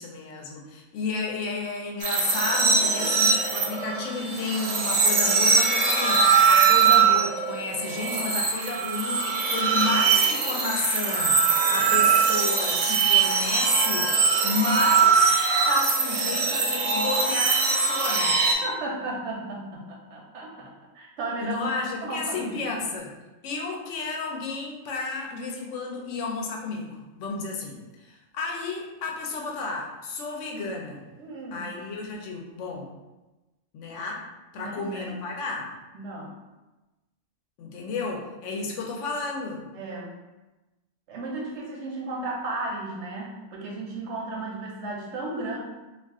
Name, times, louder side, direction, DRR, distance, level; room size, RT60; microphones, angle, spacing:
voice 1, 0.0-18.4 21.4-23.1 23.4-31.1 31.5-32.9 33.7-34.3 34.5-35.7 37.6-39.7, left 3 dB, 70° left, 0 dB, 0.8 m, -32 dB
sound 1, 2.0-18.5, right 5 dB, 90° right, 1.1 m, -22 dB
voice 2, 18.6-21.6 22.0-22.6 31.2-31.7 34.6-35.1 35.9-36.3 39.7-40.1 41.1-45.6, right 2 dB, 65° right, -2 dB, 0.8 m, -34 dB
2.4 x 2.3 x 3.5 m, 1.1 s
omnidirectional pair, 1.5 m